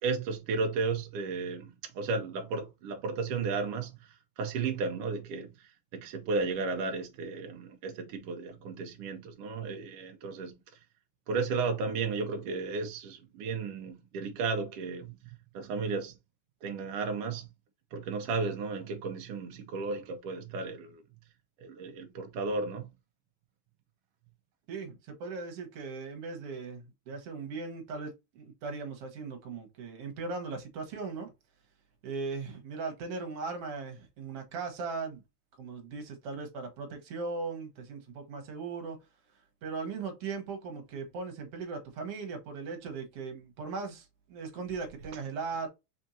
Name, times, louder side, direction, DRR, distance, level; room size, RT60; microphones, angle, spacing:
voice 1, 0.0-10.6 11.3-16.2 16.6-17.5 17.9-21.0 21.6-22.9, right 4 dB, 85° right, 1.3 m, -34 dB
voice 2, 24.7-31.3 32.0-35.2 35.6-39.0 39.6-45.7, right 4 dB, 60° right, 1.8 m, -38 dB
4.4 x 4.3 x 2.7 m
omnidirectional pair, 3.7 m